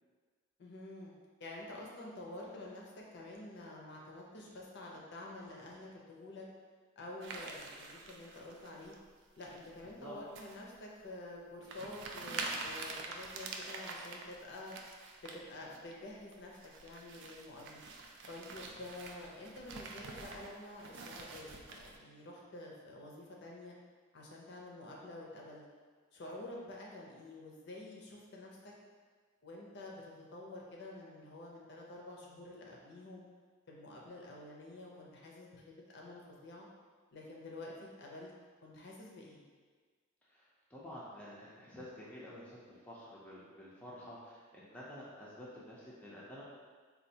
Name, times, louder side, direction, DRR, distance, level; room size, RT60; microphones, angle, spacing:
voice 1, 0.6-1.1 1.4-6.5 7.0-8.9 9.4-14.8 15.2-17.8 18.3-23.8 24.1-25.6 26.1-28.7 29.4-33.3 33.7-36.7 37.1-38.3 38.6-39.4, left 2 dB, 50° left, -2 dB, 0.5 m, -49 dB
sound 1, 7.2-9.0 9.4-9.8 10.3-10.6 11.1-11.2 11.6-15.4 15.7-15.9 16.3-22.0, right 3 dB, 55° right, 0.3 m, -46 dB
voice 2, 40.7-46.4, equal, 5° left, -7 dB, 0.4 m, -50 dB
4.3 x 2.3 x 2.7 m, 1.5 s
head